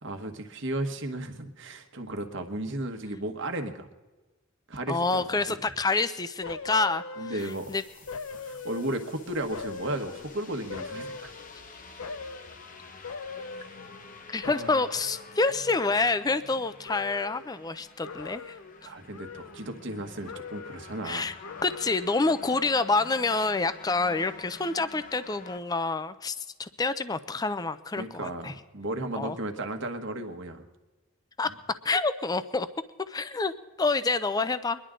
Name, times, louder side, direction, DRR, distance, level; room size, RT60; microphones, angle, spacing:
voice 1, 0.0-3.9 4.7-5.5 7.2-7.7 8.5-11.3 13.5-13.7 14.4-14.8 18.8-21.3 28.0-30.7 31.4-31.6, right 1 dB, 60° right, 5 dB, 1.4 m, -34 dB
voice 2, 4.9-7.0 7.3-7.4 7.7-7.8 14.3-18.5 21.0-21.3 21.6-28.5 29.2-29.3 31.4-31.5 31.8-32.7 33.1-33.5 33.8-34.8, left 3 dB, 20° left, 13 dB, 0.5 m, -27 dB
sound 1, 6.4-7.7 8.1-9.2 9.5-11.6 12.0-12.6 13.0-14.2 14.4-16.6 16.9-17.5 18.0-18.8 19.1-20.0 20.2-21.0 21.4-22.2 22.6-22.7, left 4 dB, 80° left, 0.6 m, -41 dB
sound 2, 7.4-25.6, left 4 dB, 40° left, 1.0 m, -49 dB
24.0 x 11.0 x 3.8 m, 1.2 s
head